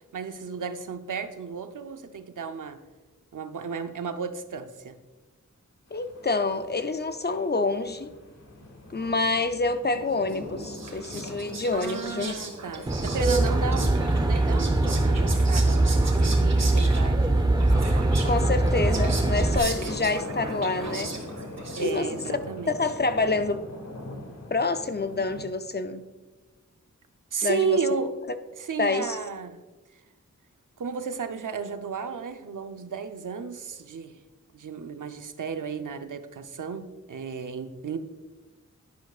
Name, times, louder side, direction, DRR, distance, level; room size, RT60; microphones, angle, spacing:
voice 1, 0.1-2.8 3.3-5.0 11.7-17.9 21.7-22.8 27.3-28.2 28.6-29.6 30.8-34.2 34.5-38.0, right 6 dB, 85° right, 9 dB, 0.7 m, -33 dB
sound 1, 5.9-25.4, left 1 dB, 60° left, 1.6 m, -42 dB
voice 2, 5.9-8.1 8.9-12.4 12.8-12.9 18.2-21.1 21.8-22.1 22.7-23.6 24.5-26.1 27.4-27.8 28.8-29.2, left 3 dB, 35° left, 10 dB, 0.5 m, -27 dB
Whispering, 10.3-22.3, right 3 dB, 60° right, 1.6 m, -38 dB
Aircraft, 12.9-19.6, right 2 dB, 15° right, 0.8 m, -22 dB
10.5 x 10.5 x 2.4 m, 1.2 s
wide cardioid pair, 70°, 31 cm